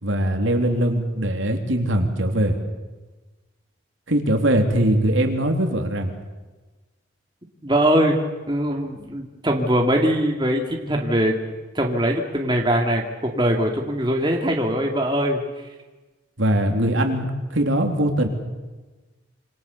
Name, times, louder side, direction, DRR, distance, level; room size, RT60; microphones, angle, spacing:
voice 1, 0.0-2.6 4.1-6.1 16.4-18.3, right 1 dB, 70° right, 4 dB, 3.4 m, -21 dB
voice 2, 7.6-8.2 8.5-11.4 11.7-15.4, equal, 20° right, 1 dB, 2.5 m, -21 dB
27.5 x 26.0 x 7.1 m, 1.2 s
head